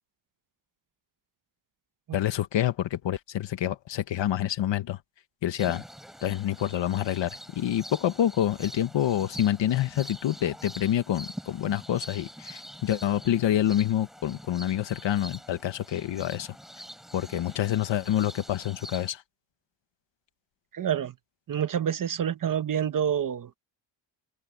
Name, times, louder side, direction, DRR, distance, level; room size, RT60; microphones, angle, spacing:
voice 1, 2.1-5.0 5.4-5.8 6.2-16.5 17.1-19.2, left 11 dB, 60° left, 1.6 m, -27 dB
sound 1, 5.6-19.1, equal, ahead, 6.1 m, -45 dB
voice 2, 20.7-21.1 21.5-23.6, right 9 dB, 40° right, 1.1 m, -28 dB
open air
cardioid pair, 170°, 49 cm